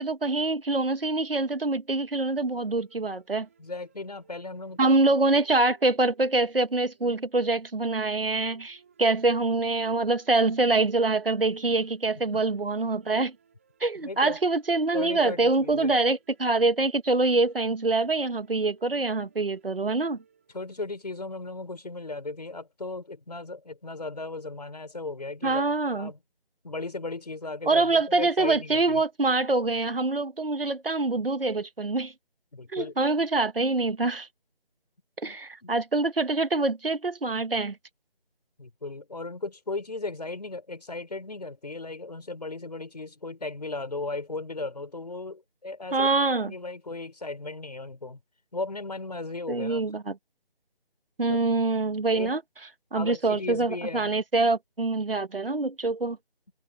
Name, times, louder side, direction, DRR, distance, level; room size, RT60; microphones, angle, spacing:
voice 1, 0.0-3.5 4.8-13.3 13.8-20.2 25.4-26.1 27.7-32.1 32.7-34.3 35.2-37.8 45.9-46.5 49.5-50.2 51.2-52.4 52.9-56.2, right 3 dB, 65° right, 1.7 m, -25 dB
sound 1, 2.5-21.0, right 7 dB, 15° right, 5.9 m, -62 dB
voice 2, 3.6-5.0 12.3-12.4 14.0-14.4 14.9-16.0 20.5-25.6 25.9-26.2 26.6-29.0 32.5-32.9 35.2-35.4 35.6-35.7 38.6-46.1 46.4-48.2 48.5-49.8 51.3-51.4 52.1-52.4 52.9-54.1, left 3 dB, 45° left, 5.6 m, -36 dB
figure-of-eight pair, 180°, 30 cm